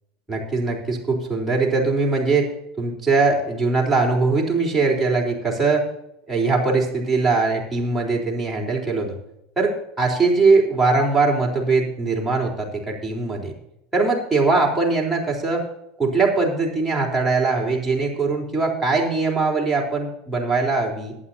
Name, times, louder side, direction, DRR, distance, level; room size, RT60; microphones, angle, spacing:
voice 1, 0.3-2.5 2.8-5.8 6.3-9.2 9.6-13.5 13.9-15.6 16.0-21.1, right 3 dB, 10° right, -3 dB, 3.9 m, -21 dB
22.0 x 9.4 x 2.8 m, 0.85 s
hypercardioid pair, 90°, 0 cm